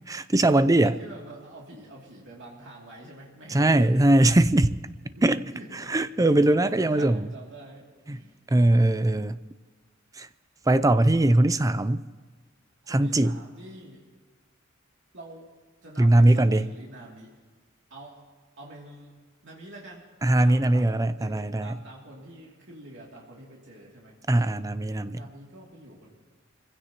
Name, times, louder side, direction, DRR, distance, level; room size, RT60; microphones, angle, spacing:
voice 1, 0.1-1.0 3.5-4.7 5.2-5.4 5.9-7.2 8.1-8.2 8.5-9.4 10.2-10.3 10.7-12.0 12.9-13.4 16.0-16.7 20.2-21.7 24.3-25.2, right 1 dB, 15° right, 13 dB, 0.5 m, -21 dB
voice 2, 0.8-4.0 5.1-5.2 5.5-8.4 12.8-14.0 15.1-15.5 15.8-17.3 17.9-18.2 18.6-20.1 20.4-20.9 21.2-24.1 25.1-26.2, right 1 dB, 65° right, -3 dB, 2.8 m, -46 dB
25.0 x 16.0 x 3.0 m, 1.4 s
head